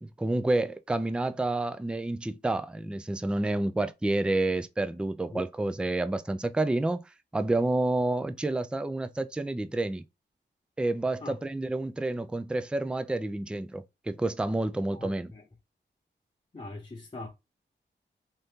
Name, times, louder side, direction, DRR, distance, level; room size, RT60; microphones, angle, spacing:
voice 1, 0.0-7.0 7.3-10.0 10.8-15.3, right 2 dB, 5° right, 0.3 m, -29 dB
voice 2, 14.9-15.4 16.5-17.3, left 2 dB, 25° left, 1.0 m, -41 dB
2.8 x 2.6 x 3.5 m
cardioid pair, 60°, 20 cm